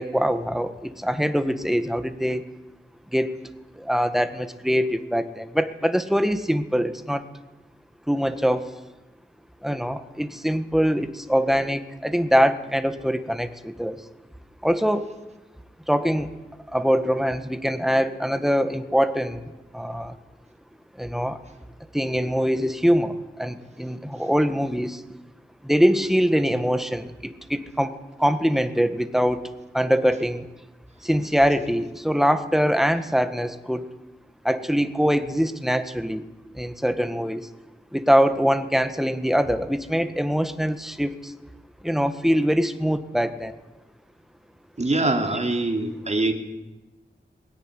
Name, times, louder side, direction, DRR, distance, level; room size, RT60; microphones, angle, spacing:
voice 1, 0.0-2.5 3.1-3.3 3.8-7.2 8.1-8.7 9.6-14.0 14.6-15.1 15.9-16.3 16.7-20.2 21.0-21.4 21.9-25.0 25.6-30.4 31.0-33.9 34.4-36.3 36.5-37.5 37.9-41.3 41.8-43.5 45.3-45.4, equal, ahead, 10 dB, 1.6 m, -23 dB
voice 2, 44.8-46.3, right 2 dB, 35° right, 4 dB, 3.2 m, -23 dB
20.5 x 17.5 x 9.8 m, 1.1 s
wide cardioid pair, 85°, 19 cm